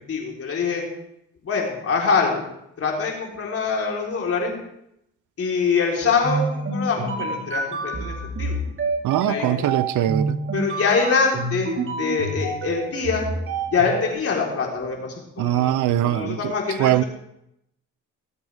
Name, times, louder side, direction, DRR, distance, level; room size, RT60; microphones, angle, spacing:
voice 1, 0.1-0.8 1.4-2.5 2.8-4.5 5.4-8.6 9.2-9.7 10.5-13.3 13.7-15.8 16.0-17.1, left 5 dB, 50° left, 3.9 m, -24 dB
sound 1, 6.2-14.1, right 3 dB, 45° right, 2.6 m, -28 dB
voice 2, 9.0-10.4 15.4-16.4 16.8-17.0, right 13 dB, 80° right, 0.6 m, -21 dB
20.0 x 8.2 x 3.5 m
cardioid pair, 90°, 30 cm